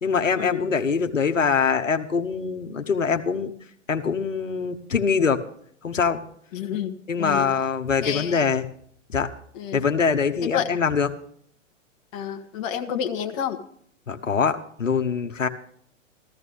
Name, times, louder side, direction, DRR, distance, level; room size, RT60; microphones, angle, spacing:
voice 1, 0.0-3.5 3.9-5.4 5.8-6.2 7.1-8.6 9.1-9.3 9.7-11.1 14.1-15.5, left 5 dB, 75° left, 7 dB, 1.1 m, -23 dB
voice 2, 6.5-7.5 8.0-8.5 9.5-9.8 10.4-10.7 12.1-13.6, left 9 dB, 30° left, 6 dB, 1.2 m, -29 dB
15.0 x 13.5 x 3.5 m, 0.62 s
figure-of-eight pair, 110°, 38 cm